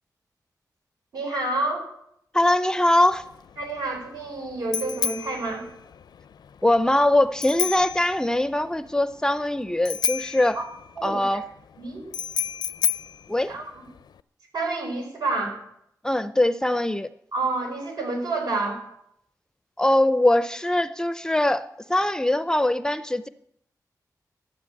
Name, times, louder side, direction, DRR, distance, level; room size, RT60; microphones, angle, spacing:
voice 1, 1.1-1.9 3.6-5.7 10.5-10.6 11.0-11.2 11.8-12.1 13.5-13.9 14.5-15.6 17.3-18.8, right 2 dB, 70° right, 5.3 m, -29 dB
voice 2, 2.3-3.2 6.6-10.6 11.0-11.4 13.3-13.5 16.0-17.1 19.8-23.3, left 1 dB, 10° left, 0.5 m, -22 dB
Bicycle bell, 3.1-14.2, left 8 dB, 90° left, 0.5 m, -32 dB
13.0 x 11.0 x 8.6 m
wide cardioid pair, 170°, 7 cm